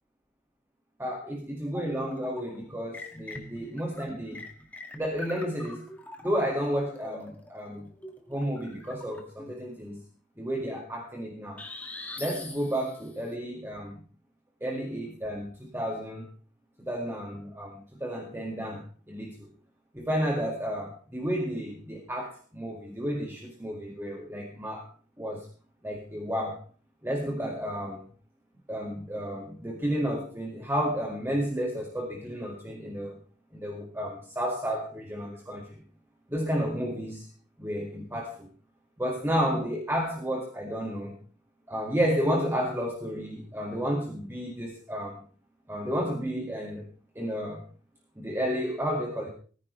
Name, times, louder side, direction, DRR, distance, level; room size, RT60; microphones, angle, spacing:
voice 1, 1.0-4.4 5.0-5.9 6.2-7.9 8.3-10.0 10.4-11.6 12.2-14.0 14.6-16.3 16.8-19.5 19.9-24.9 25.2-25.5 25.8-26.6 27.0-28.0 28.7-33.2 33.5-35.8 36.3-37.3 37.6-38.5 39.0-41.2 41.7-45.2 45.7-46.8 47.2-47.6 48.2-49.3, equal, 15° right, 0 dB, 2.0 m, -32 dB
sound 1, 1.7-2.6 2.9-9.5 11.6-13.1, left 2 dB, 10° left, 1.9 m, -44 dB
18.5 x 15.0 x 3.2 m, 0.40 s
head